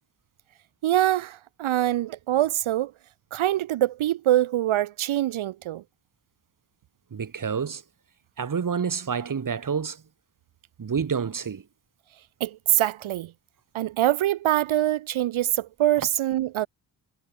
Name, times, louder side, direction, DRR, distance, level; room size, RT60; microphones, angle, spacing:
voice 1, 0.8-2.9 3.3-5.8 12.4-13.3 13.7-16.7, right 13 dB, 75° right, 0.6 m, -24 dB
voice 2, 7.1-7.8 8.4-10.0 10.8-11.6, right 6 dB, 40° right, 1.2 m, -28 dB
cardioid pair, 70°, 49 cm